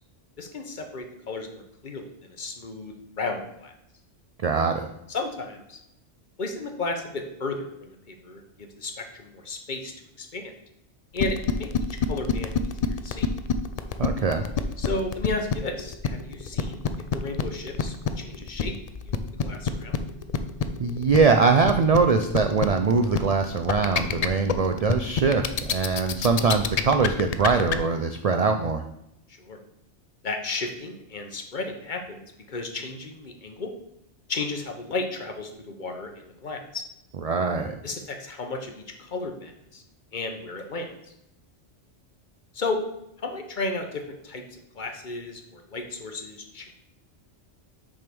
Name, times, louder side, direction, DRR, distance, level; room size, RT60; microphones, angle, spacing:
voice 1, 0.4-3.7 5.1-5.8 6.4-10.5 11.1-11.7 12.1-13.3 14.8-16.8 17.1-18.7 19.0-20.0 29.3-29.6 30.2-33.7 34.3-36.8 37.8-39.8 40.1-40.9 42.5-42.8 43.2-46.7, left 3 dB, 45° left, 5 dB, 0.9 m, -34 dB
voice 2, 4.4-4.9 14.0-14.4 20.8-28.8 37.2-37.8, right 4 dB, 70° right, 6 dB, 0.3 m, -22 dB
sound 1, 11.2-27.8, left 7 dB, 75° left, 0.3 m, -26 dB
6.2 x 3.5 x 6.0 m, 0.81 s
omnidirectional pair, 1.2 m